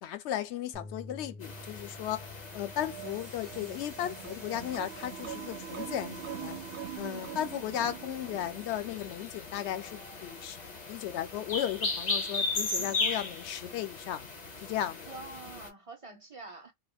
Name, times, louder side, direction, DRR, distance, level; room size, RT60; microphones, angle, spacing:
voice 1, 0.0-6.6 6.9-10.6 10.9-14.3 14.6-15.1, left 11 dB, 75° left, 0.8 m, -35 dB
Bass guitar, 0.7-7.0, left 2 dB, 10° left, 0.4 m, -51 dB
sound 1, 1.4-15.7, left 3 dB, 40° left, 0.9 m, -38 dB
sound 2, 2.7-9.1, right 9 dB, 70° right, 0.9 m, -43 dB
voice 2, 7.0-7.4 12.7-13.0 15.1-16.7, right 3 dB, 35° right, 0.7 m, -46 dB
3.4 x 2.3 x 2.3 m
omnidirectional pair, 1.2 m